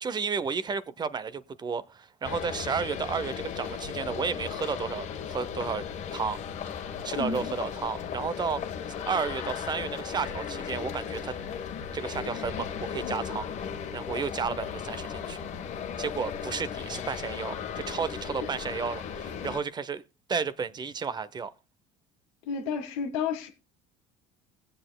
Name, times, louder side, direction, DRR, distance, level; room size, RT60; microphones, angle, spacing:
voice 1, 0.0-5.9 6.1-6.4 7.0-8.6 9.1-11.3 11.9-13.5 13.9-15.4 16.0-20.0 20.3-21.5, right 5 dB, 30° right, 0.7 m, -32 dB
sound 1, 2.2-19.6, left 7 dB, 50° left, 1.3 m, -36 dB
voice 2, 7.1-7.5 22.5-23.5, left 6 dB, 85° left, 1.7 m, -31 dB
20.5 x 7.8 x 2.2 m
supercardioid pair, 100°, 15 cm